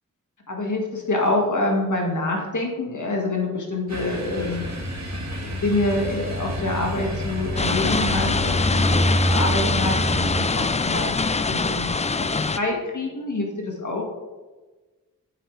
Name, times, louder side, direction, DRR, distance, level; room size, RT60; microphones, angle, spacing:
voice 1, 0.5-4.6 5.4-14.0, left 2 dB, 60° left, 0 dB, 2.0 m, -26 dB
sound 1, 3.9-10.5, equal, 50° right, 1.8 m, -27 dB
sound 2, 7.6-12.6, left 4 dB, 20° left, 0.4 m, -24 dB
9.7 x 8.1 x 3.4 m, 1.2 s
wide cardioid pair, 55°, 34 cm